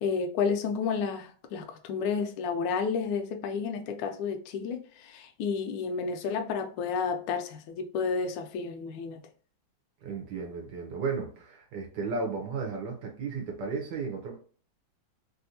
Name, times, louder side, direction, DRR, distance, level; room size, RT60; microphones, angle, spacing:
voice 1, 0.0-9.2, left 5 dB, 75° left, 1.1 m, -31 dB
voice 2, 10.0-14.4, right 4 dB, 70° right, 1.2 m, -34 dB
3.4 x 2.5 x 2.7 m
omnidirectional pair, 2.2 m